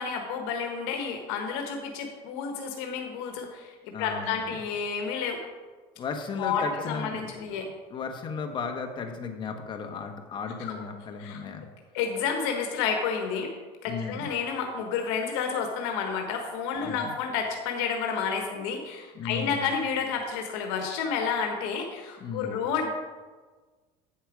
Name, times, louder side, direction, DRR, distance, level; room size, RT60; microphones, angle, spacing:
voice 1, 0.0-5.4 6.4-7.7 10.7-10.8 11.2-11.4 11.9-13.5 13.8-22.9, left 6 dB, 85° left, 3 dB, 1.2 m, -30 dB
voice 2, 3.9-4.5 6.0-7.6 7.9-11.6 13.9-14.3 16.8-17.1 19.1-19.6 22.2-22.6, left 5 dB, 35° left, 5 dB, 1.2 m, -35 dB
8.7 x 7.3 x 4.9 m, 1.4 s
cardioid pair, 125°, 13 cm